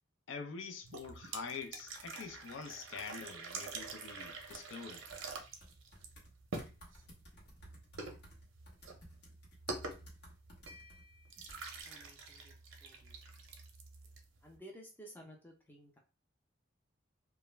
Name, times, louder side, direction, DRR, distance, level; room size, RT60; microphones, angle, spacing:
voice 1, 0.3-5.0, left 5 dB, 75° left, 0.4 m, -45 dB
sound 1, 0.8-14.6, right 3 dB, 80° right, 0.6 m, -47 dB
sound 2, 4.5-4.6 5.1-6.3 6.6-11.0 11.5-11.8, equal, 55° left, 1.0 m, -57 dB
voice 2, 11.8-12.5 12.8-13.2 14.4-16.0, equal, 10° left, 0.5 m, -55 dB
2.3 x 2.1 x 3.1 m
head